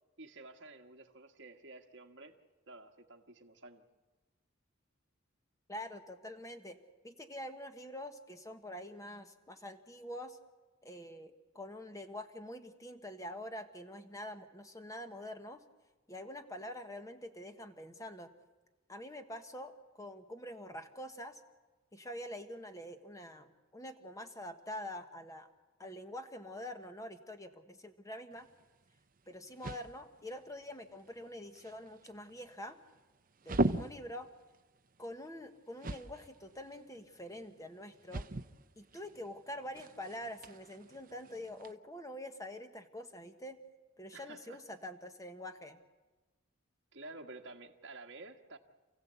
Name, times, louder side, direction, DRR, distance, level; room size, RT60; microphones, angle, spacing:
voice 1, 0.2-2.3 2.7-3.8 44.1-44.6 46.9-48.6, right 2 dB, 60° right, 2 dB, 1.6 m, -51 dB
voice 2, 5.7-6.8 7.0-10.4 10.8-15.6 16.1-18.3 18.9-21.4 21.9-25.5 25.8-28.5 29.3-32.8 33.4-34.3 35.0-38.3 38.8-43.6 44.0-45.8, left 1 dB, 15° left, 7 dB, 1.3 m, -46 dB
sound 1, 28.3-41.7, right 2 dB, 40° right, 0.7 m, -42 dB
28.5 x 15.5 x 8.2 m, 1.2 s
head